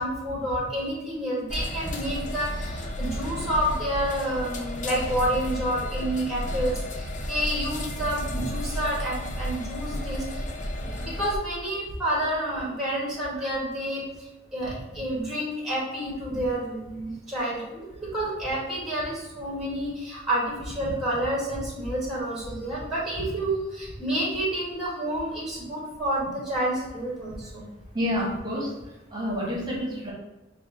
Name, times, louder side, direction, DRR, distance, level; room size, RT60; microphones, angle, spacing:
voice 1, 0.0-10.2 10.8-14.0 14.5-27.7, right 1 dB, ahead, -6 dB, 1.5 m, -29 dB
sound 1, 1.5-11.4, equal, 40° left, 0.6 m, -32 dB
voice 2, 27.9-28.7 29.1-30.1, equal, 20° right, -4 dB, 1.3 m, -28 dB
4.5 x 2.5 x 4.7 m, 1.1 s
head